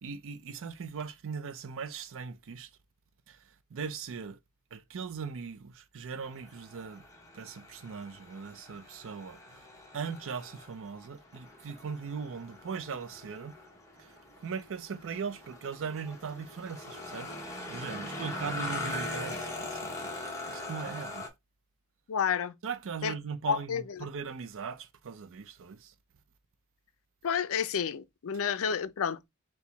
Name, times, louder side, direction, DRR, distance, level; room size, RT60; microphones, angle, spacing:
voice 1, 0.0-2.7 3.3-3.4 3.7-4.4 4.7-7.0 7.3-9.7 9.9-13.5 14.0-14.1 14.4-21.3 22.6-25.9, right 6 dB, 60° right, 0.5 m, -39 dB
sound 1, 6.2-21.3, left 2 dB, 15° left, 1.1 m, -42 dB
voice 2, 22.1-22.5 23.0-23.1 23.5-24.0 27.2-29.3, left 7 dB, 65° left, 0.5 m, -30 dB
4.5 x 2.2 x 3.9 m
head